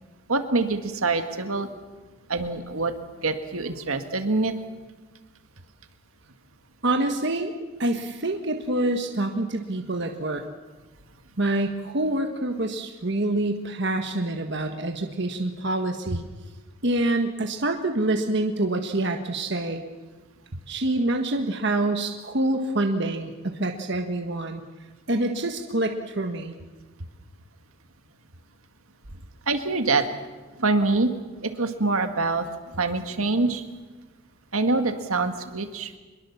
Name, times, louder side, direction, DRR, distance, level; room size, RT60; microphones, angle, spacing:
voice 1, 0.3-1.7 2.3-2.9 3.2-4.5 29.5-30.0 30.6-31.1 31.4-32.5 32.8-33.6 34.5-35.9, right 3 dB, 75° right, 6 dB, 2.0 m, -25 dB
voice 2, 6.8-7.5 7.8-10.4 11.4-16.2 16.8-19.8 20.7-24.6 25.1-26.5, right 2 dB, 55° right, 4 dB, 1.5 m, -26 dB
24.5 x 22.0 x 7.2 m, 1.3 s
head